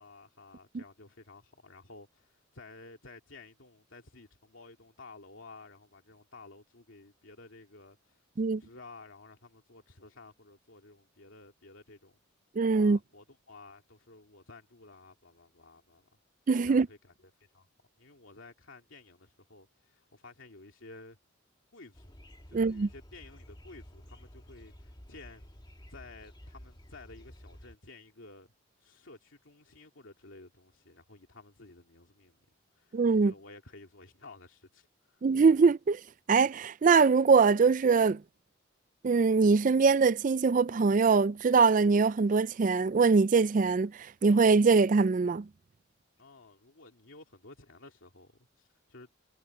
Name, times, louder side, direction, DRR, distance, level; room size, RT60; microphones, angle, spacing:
voice 1, 0.0-12.2 12.8-16.0 16.6-17.7 18.0-21.2 21.7-22.1 22.5-25.5 25.9-28.5 28.8-32.4 32.7-35.3 46.2-49.2, left 3 dB, 75° left, 2.5 m, -53 dB
voice 2, 12.6-13.0 16.5-16.9 22.5-22.9 32.9-33.3 35.2-36.0 36.3-38.2 39.0-43.9 44.2-45.5, right 4 dB, 40° right, 0.4 m, -23 dB
sound 1, 21.9-27.7, equal, 20° left, 1.9 m, -52 dB
head